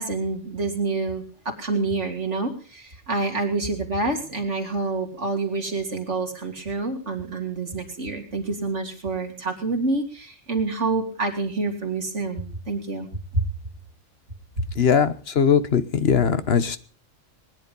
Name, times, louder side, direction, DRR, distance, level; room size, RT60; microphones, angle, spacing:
voice 1, 0.0-13.1 13.3-13.4, right 3 dB, 80° right, 3 dB, 3.3 m, -27 dB
voice 2, 14.8-16.8, left 7 dB, 60° left, 13 dB, 1.3 m, -20 dB
20.5 x 11.0 x 5.5 m, 0.41 s
omnidirectional pair, 1.2 m